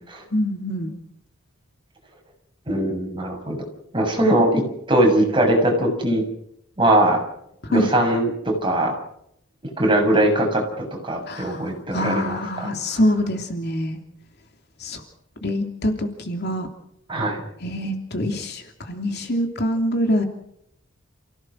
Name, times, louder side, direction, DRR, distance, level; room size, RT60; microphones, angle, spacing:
voice 1, 0.3-0.9 7.7-7.9 11.3-11.7 11.9-14.0 14.8-15.0 15.4-16.7 17.6-20.2, equal, 50° left, 5 dB, 3.1 m, -25 dB
voice 2, 2.7-3.6 3.9-6.2 6.8-7.2 7.7-8.9 9.8-12.7 17.1-17.4, right 1 dB, 20° right, 1 dB, 6.8 m, -20 dB
29.0 x 17.0 x 6.4 m, 0.75 s
head